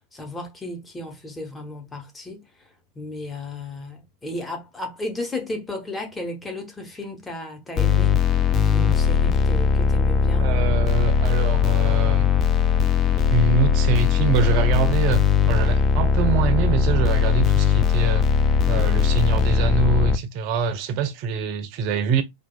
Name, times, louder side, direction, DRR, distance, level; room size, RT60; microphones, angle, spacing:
voice 1, 0.1-2.7 3.0-8.1 8.6-10.5, left 1 dB, 10° left, 1.0 m, -34 dB
sound 1, 7.8-20.2, left 6 dB, 25° left, 0.4 m, -19 dB
voice 2, 10.4-12.3 13.3-18.3 18.7-22.2, right 5 dB, 45° right, 0.6 m, -24 dB
4.4 x 2.4 x 2.2 m
figure-of-eight pair, 90°, 0 cm